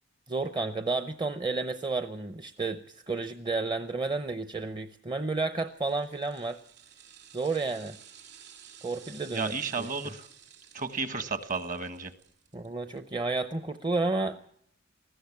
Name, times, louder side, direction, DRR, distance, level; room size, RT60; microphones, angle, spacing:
voice 1, 0.3-6.6 7.3-8.0 8.8-10.1 12.5-14.4, right 3 dB, 25° right, 10 dB, 0.7 m, -31 dB
sound 1, 5.7-13.0 13.3-13.4, right 8 dB, 60° right, 6.7 m, -53 dB
voice 2, 9.3-10.3 10.7-12.1, right 4 dB, 40° right, 11 dB, 1.5 m, -33 dB
20.5 x 15.0 x 8.6 m, 0.74 s
head